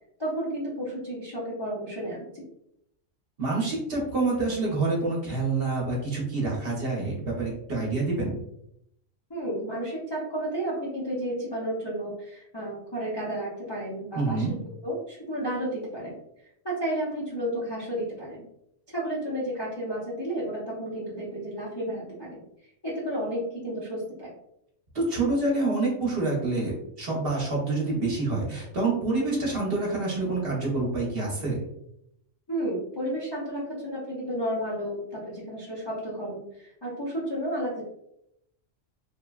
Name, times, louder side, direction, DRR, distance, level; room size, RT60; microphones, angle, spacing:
voice 1, 0.2-2.4 9.3-14.5 14.8-16.2 16.6-18.4 18.9-24.3 32.5-37.8, right 1 dB, 30° left, -7 dB, 0.5 m, -32 dB
voice 2, 3.4-8.4 14.1-14.6 24.9-31.6, right 3 dB, 50° right, -4 dB, 0.9 m, -27 dB
3.0 x 2.1 x 2.3 m, 0.77 s
omnidirectional pair, 1.3 m